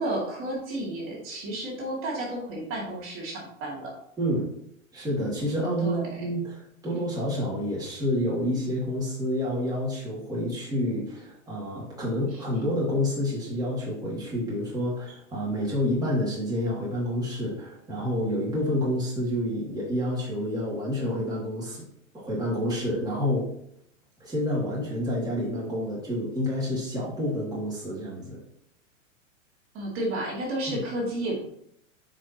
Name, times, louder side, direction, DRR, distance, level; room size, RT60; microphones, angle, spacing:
voice 1, 0.0-3.9 5.8-6.2 12.3-12.4 29.7-31.4, right 1 dB, 30° right, -3 dB, 2.5 m, -32 dB
voice 2, 4.2-4.5 4.9-21.9 22.1-23.5 24.2-28.4 30.7-30.8, left 1 dB, 10° right, -6 dB, 2.5 m, -28 dB
9.4 x 5.0 x 3.0 m, 0.71 s
hypercardioid pair, 125°, 40 cm